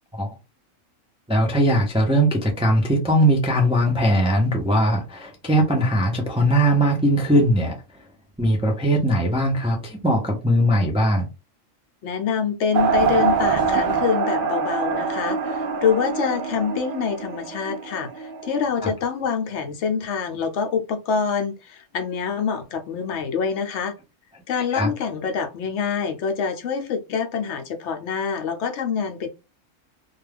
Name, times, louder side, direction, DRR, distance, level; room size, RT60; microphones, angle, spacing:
voice 1, 1.3-7.8 8.4-11.3 18.8-18.9 24.7-24.9, equal, 10° right, 0.3 m, -20 dB
voice 2, 12.0-23.9 24.5-29.3, left 6 dB, 70° left, 0.8 m, -26 dB
sound 1, 12.7-18.7, right 5 dB, 60° right, 0.6 m, -24 dB
2.3 x 2.3 x 3.3 m
omnidirectional pair, 1.3 m